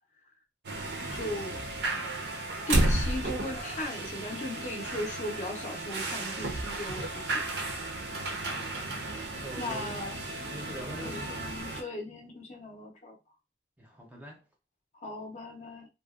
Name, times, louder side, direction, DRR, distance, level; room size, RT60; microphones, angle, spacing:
sound 1, 0.6-11.8, right 2 dB, 70° right, 0.5 m, -33 dB
voice 1, 1.1-1.6 2.7-7.4 9.6-10.2 11.0-13.2 14.9-15.9, left 1 dB, 40° left, 0.5 m, -37 dB
voice 2, 9.1-10.0 10.4-11.3 13.8-14.4, equal, 10° right, 0.5 m, -43 dB
2.6 x 2.0 x 2.3 m
head